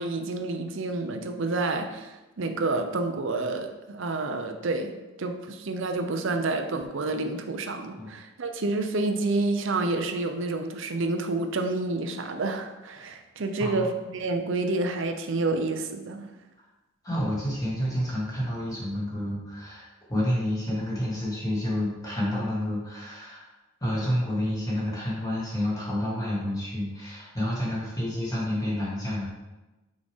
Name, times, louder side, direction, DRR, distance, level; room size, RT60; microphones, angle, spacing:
voice 1, 0.0-16.3, right 2 dB, 60° right, 6 dB, 0.6 m, -29 dB
voice 2, 17.0-23.5 23.8-29.3, left 1 dB, 15° left, -6 dB, 1.9 m, -29 dB
6.2 x 4.9 x 3.6 m, 1.1 s
head